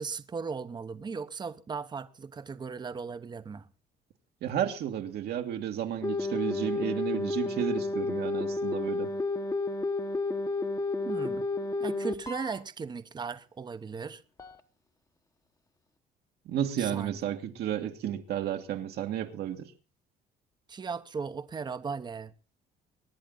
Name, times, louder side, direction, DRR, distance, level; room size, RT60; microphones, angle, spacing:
voice 1, 0.0-3.7 11.0-11.5 11.8-14.2 16.8-17.2 20.7-22.3, right 5 dB, 25° right, 0.9 m, -37 dB
voice 2, 4.4-9.1 16.5-19.7, right 10 dB, 70° right, 1.7 m, -32 dB
sound 1, 6.0-12.6 14.4-14.6, left 3 dB, 20° left, 1.1 m, -31 dB
23.5 x 10.5 x 3.9 m
cardioid pair, 110°, 17 cm